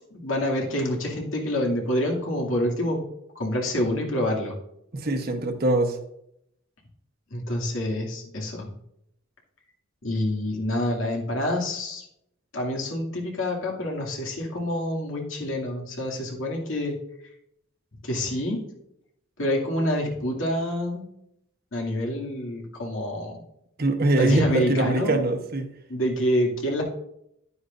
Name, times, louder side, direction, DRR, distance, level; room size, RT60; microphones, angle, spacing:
voice 1, 0.1-3.0 3.4-4.5 7.3-8.7 10.0-12.0 12.5-17.0 18.0-18.6 19.4-21.0 21.7-23.4 24.1-25.2 25.9-26.8, left 1 dB, 85° left, -2 dB, 2.3 m, -27 dB
voice 2, 4.9-6.0 23.8-25.7, right 1 dB, 50° right, 6 dB, 1.0 m, -23 dB
11.0 x 9.5 x 2.5 m, 0.77 s
head